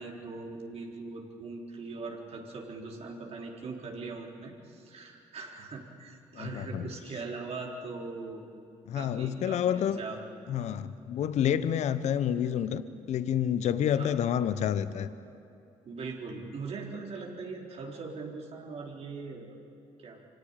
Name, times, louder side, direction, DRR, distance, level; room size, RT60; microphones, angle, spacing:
voice 1, 0.0-8.5 8.9-10.2 13.9-14.2 15.9-19.7 20.0-20.2, right 3 dB, 60° right, 0 dB, 4.0 m, -41 dB
voice 2, 6.3-6.9 8.9-10.0 10.5-15.1, left 9 dB, 70° left, 13 dB, 0.9 m, -29 dB
25.0 x 17.5 x 9.0 m, 2.6 s
supercardioid pair, 55°, 12 cm